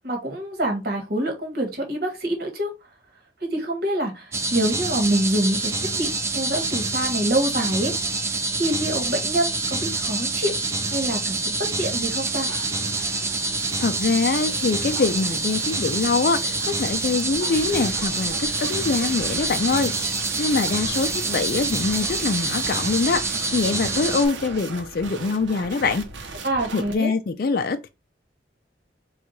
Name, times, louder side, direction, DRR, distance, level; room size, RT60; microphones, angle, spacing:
voice 1, 0.0-2.7 3.4-8.0 8.6-10.6 10.9-12.5 26.4-27.1, right 1 dB, 55° right, 1.4 m, -26 dB
sound 1, 4.3-24.3, right 3 dB, 15° right, 0.4 m, -26 dB
sound 2, 12.1-26.9, right 4 dB, 85° right, 0.7 m, -37 dB
voice 2, 13.8-26.0 26.7-27.9, left 4 dB, 50° left, 0.4 m, -24 dB
4.6 x 2.4 x 3.8 m
head